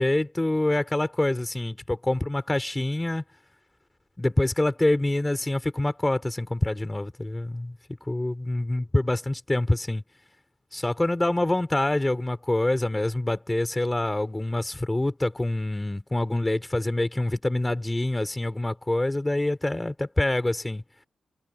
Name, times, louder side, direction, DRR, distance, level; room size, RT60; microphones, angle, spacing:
voice 1, 0.0-3.2 4.2-7.8 8.0-10.0 10.7-20.8, left 1 dB, 15° left, 3.3 m, -26 dB
cardioid pair, 70°, 0 cm